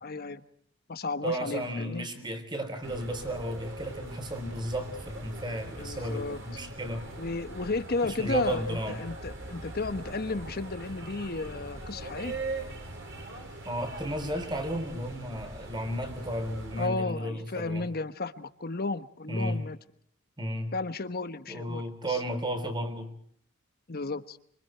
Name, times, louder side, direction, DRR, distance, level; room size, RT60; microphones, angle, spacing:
voice 1, 0.0-0.4 0.9-2.1 5.8-6.4 7.2-12.3 16.8-19.8 20.7-22.2 23.9-24.4, left 3 dB, 45° left, 11 dB, 1.2 m, -33 dB
voice 2, 1.2-7.1 8.0-9.0 13.7-17.9 19.3-19.6 20.4-20.7 21.5-23.1, right 1 dB, 20° right, 7 dB, 3.8 m, -33 dB
sound 1, 2.8-16.9, right 2 dB, 60° right, 5.8 m, -41 dB
27.0 x 26.0 x 4.6 m, 0.65 s
head